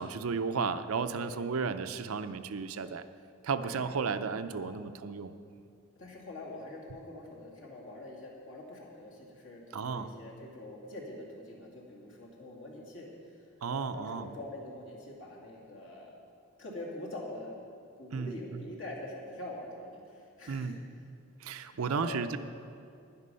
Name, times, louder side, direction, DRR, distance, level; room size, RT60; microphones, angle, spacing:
voice 1, 0.0-3.0 3.4-5.3 9.7-10.1 13.6-14.3 18.1-18.6 20.5-20.8 21.4-22.4, right 5 dB, 80° right, 11 dB, 0.5 m, -33 dB
voice 2, 1.1-1.5 3.6-3.8 4.5-4.8 6.0-16.1 16.6-17.5 18.0-20.8 21.6-22.2, left 1 dB, 60° left, -3 dB, 2.5 m, -45 dB
11.5 x 10.5 x 5.6 m, 2.4 s
head